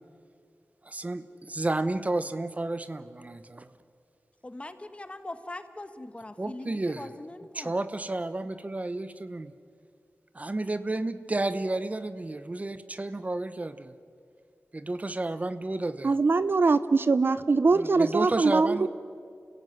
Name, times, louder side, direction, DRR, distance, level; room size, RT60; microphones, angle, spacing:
voice 1, 0.8-3.7 6.4-7.1 7.5-9.5 10.3-13.9 14.7-16.2 17.7-18.9, right 2 dB, 35° right, 13 dB, 1.0 m, -31 dB
voice 2, 4.4-7.8, left 2 dB, 25° left, 10 dB, 1.4 m, -41 dB
voice 3, 16.0-18.9, right 4 dB, 55° right, 14 dB, 0.7 m, -22 dB
29.5 x 16.0 x 9.5 m, 2.3 s
wide cardioid pair, 95°, 4 cm